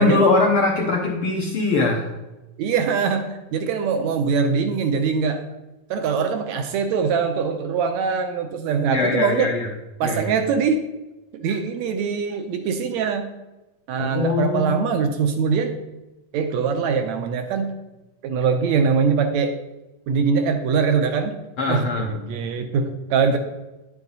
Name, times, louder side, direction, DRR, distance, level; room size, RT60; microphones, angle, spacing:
voice 1, 0.0-2.1 8.9-9.7 10.0-10.3 14.0-14.8 21.6-22.1, left 3 dB, 65° left, 0 dB, 1.3 m, -21 dB
voice 2, 2.6-5.4 5.9-9.5 10.0-10.9 11.3-13.3 13.9-15.7 16.3-17.7 18.2-19.6 20.1-21.4 21.7-23.4, right 5 dB, 75° right, 7 dB, 1.8 m, -22 dB
10.5 x 7.4 x 4.0 m, 1.0 s
omnidirectional pair, 3.7 m